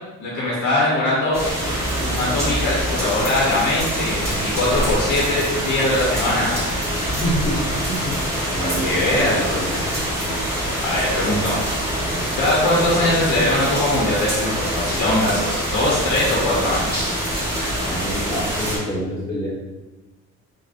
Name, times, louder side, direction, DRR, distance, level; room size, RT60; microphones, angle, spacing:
voice 1, 0.2-6.6 8.6-9.8 10.8-11.6 12.4-17.1, left 1 dB, 80° left, -5 dB, 0.7 m, -21 dB
sound 1, 1.3-18.8, equal, 10° right, 1.1 m, -25 dB
voice 2, 7.1-7.6 7.9-8.2 8.5-9.7 17.7-19.5, equal, 15° left, -6 dB, 1.2 m, -27 dB
3.4 x 2.1 x 2.4 m, 1.1 s
cardioid pair, 90°, 30 cm